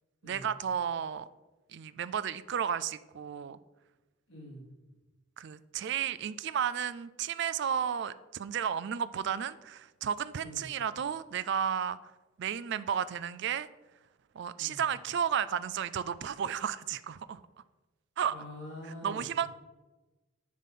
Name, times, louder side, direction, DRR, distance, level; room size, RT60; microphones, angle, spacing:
voice 1, 0.2-1.3 1.7-3.6 5.4-12.0 12.4-13.7 14.3-17.4 18.2-18.4 19.0-19.5, right 8 dB, 60° right, 15 dB, 0.4 m, -33 dB
voice 2, 4.3-4.6 10.4-10.7 14.6-14.8 18.3-19.5, left 1 dB, 65° left, -7 dB, 3.2 m, -45 dB
10.5 x 4.2 x 5.5 m, 1.1 s
head